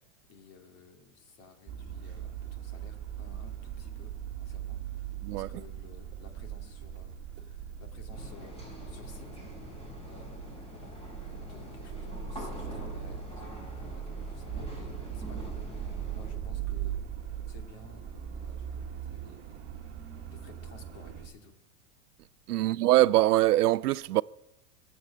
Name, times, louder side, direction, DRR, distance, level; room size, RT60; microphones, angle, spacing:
voice 1, 0.3-4.1 4.4-9.3 9.5-9.8 10.0-17.0 17.5-21.5 22.6-22.8, left 4 dB, 35° left, 2.8 m, -55 dB
sound 1, 1.7-21.3, right 8 dB, 25° right, 2.2 m, -40 dB
sound 2, 8.1-16.3, equal, 15° left, 4.6 m, -44 dB
voice 2, 22.5-24.2, right 16 dB, 85° right, 0.6 m, -23 dB
21.5 x 8.2 x 7.3 m
supercardioid pair, 140°, 45 cm